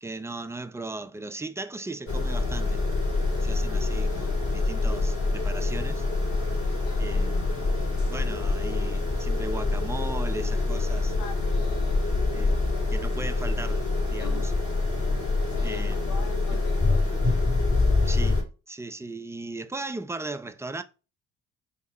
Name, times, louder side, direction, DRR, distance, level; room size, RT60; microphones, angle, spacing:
voice 1, 0.0-2.8 3.4-6.0 7.0-7.6 8.1-11.2 12.0-12.6 12.9-14.5 15.6-16.1 16.5-16.6 18.0-18.4 18.7-20.8, right 2 dB, 10° right, 0.5 m, -37 dB
sound 1, 2.1-18.4, left 3 dB, 40° left, 2.2 m, -25 dB
voice 2, 6.9-7.2 11.2-12.0 14.2-14.5 15.5-17.1, left 6 dB, 80° left, 0.6 m, -42 dB
3.5 x 2.9 x 4.2 m
supercardioid pair, 70°, 34 cm